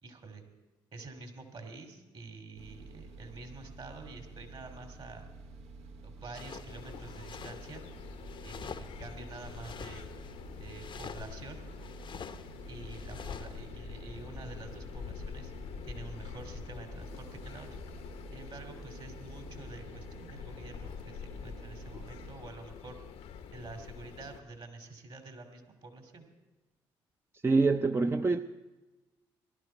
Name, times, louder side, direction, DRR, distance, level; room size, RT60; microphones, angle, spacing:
voice 1, 0.0-0.4 0.9-5.3 6.0-7.8 8.4-10.1 10.6-11.6 12.7-15.5 15.8-17.8 18.3-23.0 23.5-26.3, right 3 dB, 50° right, 5 dB, 2.4 m, -48 dB
sound 1, 2.6-22.4, right 3 dB, 70° right, 0.8 m, -49 dB
sound 2, 6.3-13.6, left 6 dB, 45° left, 0.7 m, -48 dB
sound 3, 6.7-24.4, left 7 dB, 75° left, 0.9 m, -46 dB
voice 2, 27.4-28.4, right 3 dB, 20° right, 8 dB, 0.5 m, -25 dB
17.5 x 12.0 x 4.4 m, 1.1 s
hypercardioid pair, 45°, 11 cm